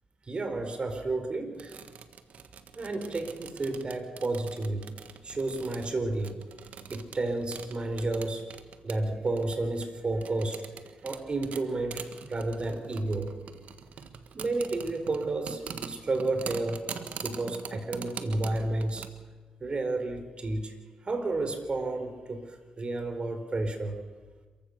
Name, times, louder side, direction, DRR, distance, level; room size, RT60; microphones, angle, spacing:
voice 1, 0.3-1.8 2.7-4.8 5.2-6.3 6.9-8.4 8.8-13.3 14.3-15.6 15.9-16.9 17.2-19.1 19.6-20.7 21.0-24.0, right 2 dB, 40° right, 7 dB, 4.4 m, -31 dB
sound 1, 1.5-19.1, right 7 dB, 70° right, 1.5 m, -44 dB
27.0 x 15.5 x 6.7 m, 1.4 s
supercardioid pair, 55°, 3 cm